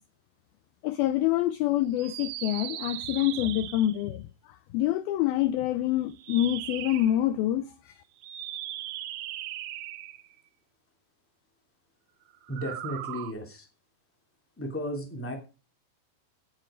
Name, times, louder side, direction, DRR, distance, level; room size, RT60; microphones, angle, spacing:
voice 1, 0.8-4.3 4.7-7.9, left 13 dB, 85° left, 2.1 m, -26 dB
sound 1, 1.9-4.1 6.1-7.2 8.2-10.3 12.4-13.3, right 13 dB, 80° right, 3.2 m, -38 dB
voice 2, 12.5-13.7 14.6-15.3, equal, 5° left, 2.1 m, -34 dB
17.5 x 7.7 x 5.2 m
omnidirectional pair, 5.1 m